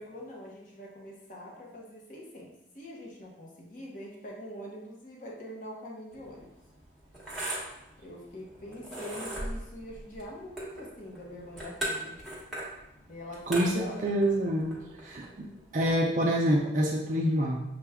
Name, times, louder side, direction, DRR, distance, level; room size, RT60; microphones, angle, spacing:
voice 1, 0.0-6.5 8.0-12.2 13.1-14.1, equal, 40° left, -2 dB, 0.8 m, -44 dB
sound 1, 6.1-15.9, right 1 dB, ahead, 1.1 m, -39 dB
voice 2, 13.5-15.5 15.7-17.6, equal, 40° right, -1 dB, 0.4 m, -27 dB
6.6 x 2.2 x 3.4 m, 0.91 s
head